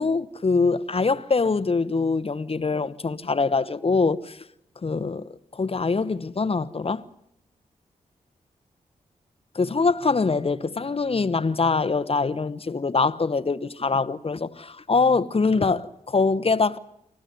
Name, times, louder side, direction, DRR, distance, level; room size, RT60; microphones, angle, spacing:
voice 1, 0.0-4.4 4.8-7.0 9.5-16.8, left 4 dB, 40° left, 1.1 m, -24 dB
25.0 x 15.5 x 9.2 m
cardioid pair, 45°, 15 cm